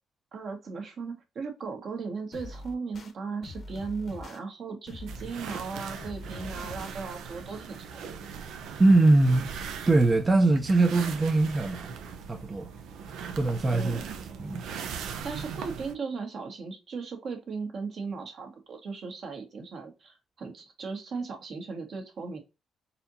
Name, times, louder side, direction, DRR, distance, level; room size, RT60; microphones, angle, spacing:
voice 1, 0.3-8.0 13.7-14.0 15.2-22.4, right 4 dB, 60° right, 1.3 m, -37 dB
sound 1, 2.3-3.1 3.4-4.4 4.9-5.7 6.0-6.9, left 2 dB, 50° left, 0.8 m, -43 dB
sound 2, 5.1-15.9, right 6 dB, 85° right, 0.5 m, -40 dB
voice 2, 8.8-11.9 12.3-12.7 13.4-14.0 14.4-14.6, right 2 dB, 25° right, 0.5 m, -22 dB
4.1 x 2.8 x 2.6 m
cardioid pair, 90°, 0 cm